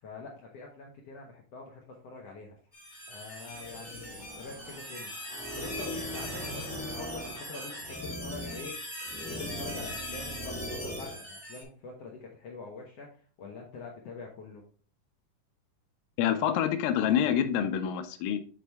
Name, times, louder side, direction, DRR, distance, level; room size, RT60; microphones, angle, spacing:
voice 1, 0.0-2.6 3.1-5.2 5.5-13.1 13.4-14.6, left 4 dB, 65° left, -1 dB, 1.6 m, -45 dB
sound 1, 2.7-11.6, equal, 15° left, 0.6 m, -39 dB
Fill (with liquid), 4.2-9.6, right 4 dB, 65° right, 3.3 m, -51 dB
voice 2, 16.2-18.4, left 9 dB, 90° left, 9 dB, 2.3 m, -27 dB
7.8 x 4.2 x 3.4 m, 0.41 s
omnidirectional pair, 3.8 m